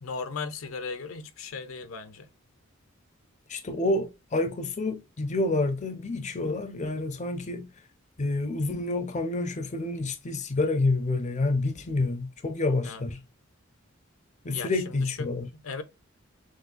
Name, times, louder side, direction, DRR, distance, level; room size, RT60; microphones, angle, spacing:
voice 1, 0.0-2.3 6.4-6.6 12.8-13.0 14.5-15.3 15.5-15.8, left 4 dB, 80° left, 0.7 m, -37 dB
voice 2, 3.5-7.7 8.2-13.2 14.4-15.5, left 2 dB, 35° left, 0.5 m, -28 dB
6.1 x 2.1 x 2.5 m
head